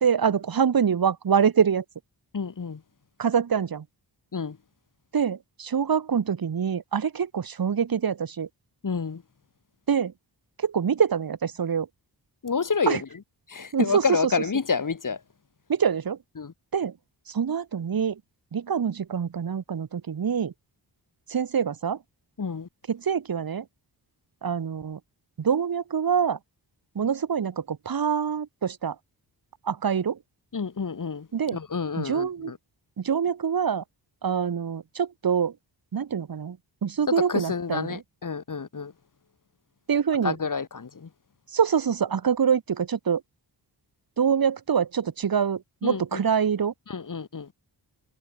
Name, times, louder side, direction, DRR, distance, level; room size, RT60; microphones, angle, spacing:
voice 1, 0.0-1.8 3.2-3.8 5.1-8.5 9.9-10.1 10.6-11.9 12.9-13.0 13.7-14.3 15.7-16.2 16.7-16.9 17.3-18.1 18.5-20.5 21.3-22.0 22.9-23.6 24.4-25.0 25.4-26.4 26.9-28.9 29.7-30.2 31.3-31.6 32.0-32.5 33.0-33.8 34.2-35.5 35.9-36.6 36.8-38.0 39.9-40.4 41.5-43.2 44.2-46.7, right 7 dB, 55° right, 1.7 m, -25 dB
voice 2, 2.3-2.8 4.3-4.6 8.8-9.2 12.4-13.0 13.5-15.2 16.4-16.5 22.4-22.7 30.5-31.3 31.5-32.6 37.2-38.9 40.2-41.1 45.8-46.2 46.9-47.5, left 5 dB, 45° left, 4.4 m, -29 dB
wide cardioid pair, 160°, 43 cm